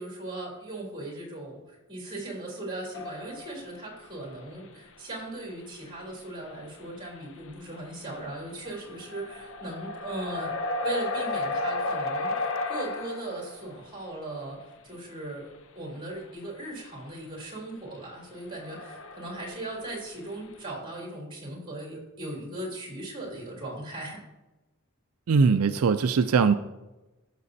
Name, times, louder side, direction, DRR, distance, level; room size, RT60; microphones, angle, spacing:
voice 1, 0.0-10.5 10.8-15.5 15.7-24.2, right 2 dB, 25° right, -3 dB, 3.4 m, -38 dB
sound 1, 2.9-3.8 4.5-4.6 6.0-6.1 6.4-6.6 7.2-7.3 7.5-13.8 18.0-18.1 18.4-20.0, left 2 dB, 65° left, 0.7 m, -33 dB
voice 2, 25.3-26.5, right 5 dB, 80° right, 9 dB, 0.4 m, -21 dB
14.5 x 6.7 x 2.7 m, 1.0 s
head